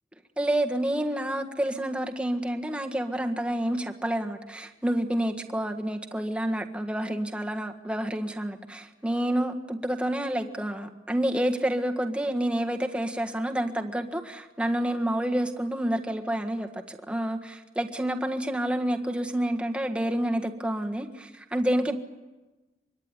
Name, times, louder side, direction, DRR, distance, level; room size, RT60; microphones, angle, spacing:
voice 1, 0.4-21.9, right 1 dB, 5° right, 3 dB, 1.6 m, -29 dB
24.5 x 24.0 x 9.8 m, 1.2 s
head